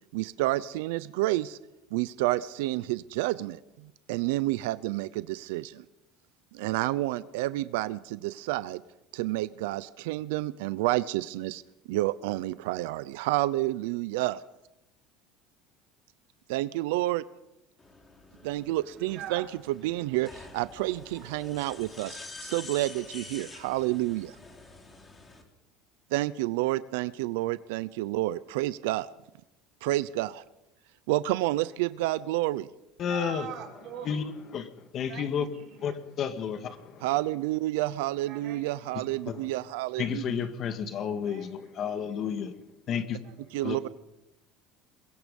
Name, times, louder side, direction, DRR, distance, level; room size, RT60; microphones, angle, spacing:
voice 1, 0.1-1.6 1.9-5.8 6.5-8.8 9.1-11.6 11.9-14.4 16.5-17.2 18.4-24.4 26.1-29.1 29.8-30.4 31.1-32.7 37.0-40.2 43.5-43.9, right 17 dB, 90° right, 0.7 m, -29 dB
sound 1, 17.8-25.4, left 3 dB, 15° left, 3.6 m, -47 dB
voice 2, 18.7-20.2 33.1-34.2 35.1-36.0 38.3-39.4 41.2-42.6 43.2-43.9, right 9 dB, 50° right, 5.2 m, -45 dB
voice 3, 33.0-33.5 34.1-34.2 34.5-35.5 35.8-37.1 39.3-39.4 40.0-42.5 42.9-43.2 43.6-43.8, left 7 dB, 40° left, 1.9 m, -31 dB
23.0 x 21.5 x 5.5 m
cardioid pair, 150°, 0 cm